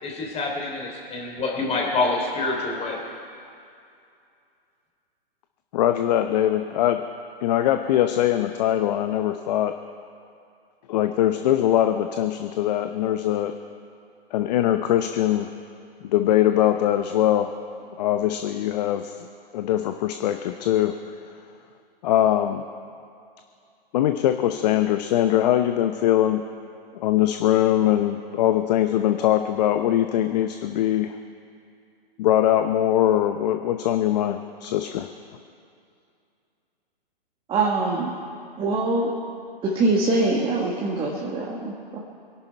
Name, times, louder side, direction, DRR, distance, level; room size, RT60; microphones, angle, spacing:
voice 1, 0.0-3.0, left 3 dB, 20° left, 0 dB, 3.2 m, -26 dB
voice 2, 5.7-7.0 7.4-9.7 10.9-13.5 14.3-15.5 16.1-17.5 18.0-19.2 19.5-20.9 22.0-22.6 23.9-26.4 26.9-31.2 32.2-35.1, left 12 dB, 45° left, 7 dB, 0.8 m, -22 dB
voice 3, 37.5-38.1 38.6-39.1 39.6-42.0, right 2 dB, 15° right, -2 dB, 1.7 m, -23 dB
23.5 x 11.5 x 4.6 m, 2.4 s
hypercardioid pair, 125°, 30 cm